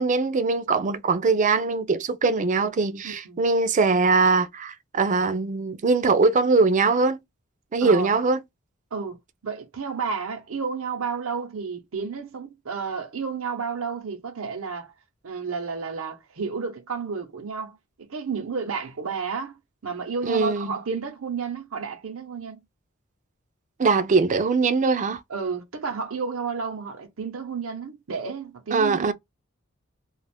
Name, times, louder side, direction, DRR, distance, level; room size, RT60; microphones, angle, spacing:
voice 1, 0.0-7.2 7.7-8.4 20.3-20.8 23.8-25.2 28.7-29.1, right 4 dB, 35° right, 0.4 m, -21 dB
voice 2, 3.0-3.4 7.8-8.1 8.9-9.2 9.4-14.9 15.2-22.6 25.3-29.1, right 5 dB, 75° right, 0.8 m, -31 dB
2.4 x 2.4 x 3.4 m
head